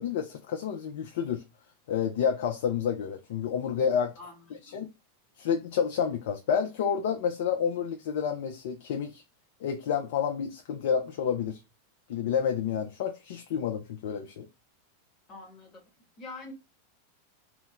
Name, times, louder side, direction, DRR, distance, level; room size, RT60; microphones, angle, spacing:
voice 1, 0.0-1.4 1.9-4.1 4.6-4.9 5.4-9.2 9.6-11.6 12.1-14.5, left 7 dB, 55° left, 0.3 m, -29 dB
voice 2, 4.2-4.8 15.3-15.8 16.2-16.5, left 3 dB, 25° left, 1.0 m, -45 dB
2.2 x 2.0 x 3.6 m
figure-of-eight pair, 90°, 0 cm